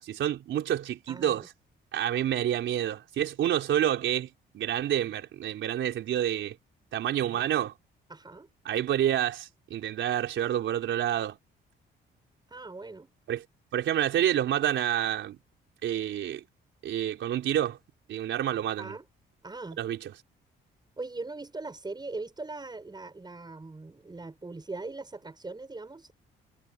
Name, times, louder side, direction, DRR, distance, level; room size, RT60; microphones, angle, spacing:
voice 1, 0.0-1.5 1.9-6.6 6.9-7.7 8.6-11.4 13.3-13.4 13.7-15.4 15.8-16.4 16.8-17.8 18.1-19.0 19.8-20.1, right 11 dB, 75° right, 4.1 m, -28 dB
voice 2, 1.1-1.5 7.3-7.5 8.1-8.5 12.5-13.1 18.8-19.0 19.4-19.8 21.0-26.1, right 3 dB, 20° right, 7.8 m, -40 dB
cardioid pair, 90°, 20 cm